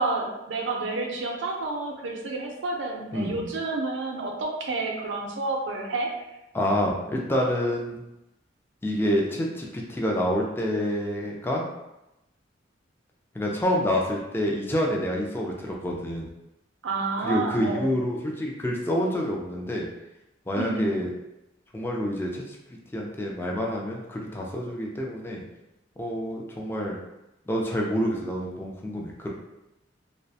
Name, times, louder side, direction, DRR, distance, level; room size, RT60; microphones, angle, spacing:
voice 1, 0.0-6.1 16.8-17.9 20.5-20.9, right 3 dB, 70° right, 0 dB, 0.5 m, -29 dB
voice 2, 3.1-3.5 6.5-8.0 8.8-11.6 13.3-16.3 17.2-19.9 20.5-21.1 21.7-25.4 26.0-27.0 27.5-29.3, equal, 10° left, -2 dB, 0.3 m, -28 dB
2.3 x 2.1 x 2.6 m, 0.92 s
head